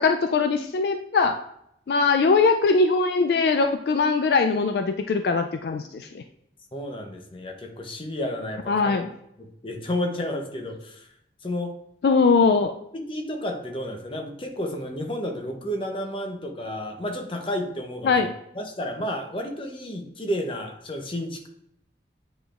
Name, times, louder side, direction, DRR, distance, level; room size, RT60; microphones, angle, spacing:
voice 1, 0.0-1.4 1.9-6.2 8.7-9.1 12.0-12.7 18.0-18.3, left 4 dB, 60° left, 6 dB, 0.3 m, -21 dB
voice 2, 6.7-9.0 9.4-11.1 11.4-11.8 12.9-18.3 18.5-21.5, left 1 dB, 30° left, 4 dB, 0.7 m, -31 dB
8.0 x 5.0 x 2.4 m, 0.76 s
head